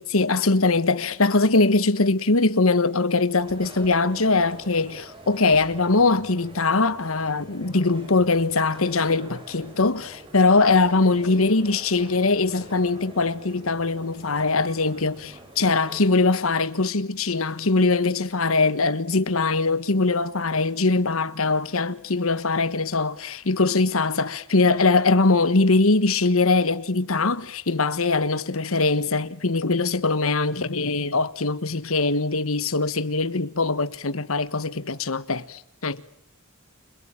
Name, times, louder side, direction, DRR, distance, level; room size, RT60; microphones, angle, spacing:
voice 1, 0.0-36.0, left 3 dB, 80° left, 1.4 m, -22 dB
sound 1, 3.4-16.0, right 1 dB, 25° right, 4.9 m, -45 dB
30.0 x 22.5 x 8.9 m
head